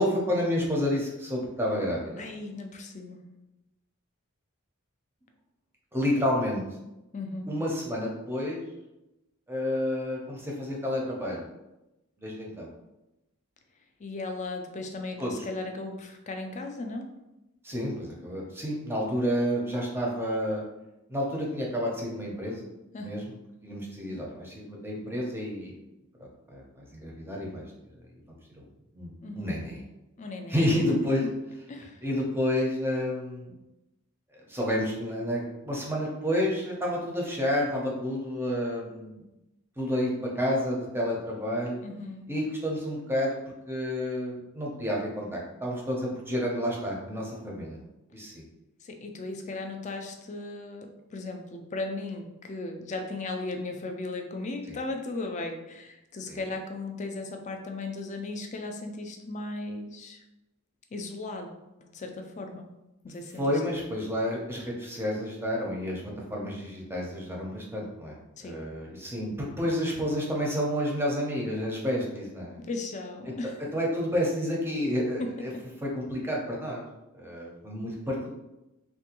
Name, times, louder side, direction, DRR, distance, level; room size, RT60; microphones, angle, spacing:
voice 1, 0.0-2.2 5.9-6.6 7.5-8.6 9.5-11.4 12.2-12.7 15.2-15.3 17.6-20.6 21.1-22.7 23.0-23.2 23.6-25.7 26.2-27.6 28.5-28.7 28.9-29.8 30.5-31.2 32.0-33.5 34.3-39.2 39.8-41.8 42.3-43.4 43.7-47.8 48.1-48.4 54.7-54.8 56.3-56.4 63.3-66.0 66.3-72.6 73.3-73.4 73.7-75.5 75.8-76.8 77.1-78.4, equal, 10° right, -2 dB, 0.6 m, -30 dB
voice 2, 2.2-3.2 7.1-7.5 14.0-17.1 22.9-23.1 29.2-29.5 30.2-30.6 31.7-32.0 41.8-42.3 48.8-60.2 60.9-62.7 63.0-63.6 68.4-68.6 72.6-73.5 75.2-75.3, left 2 dB, 35° left, 4 dB, 0.4 m, -36 dB
3.4 x 2.2 x 2.9 m, 0.95 s
head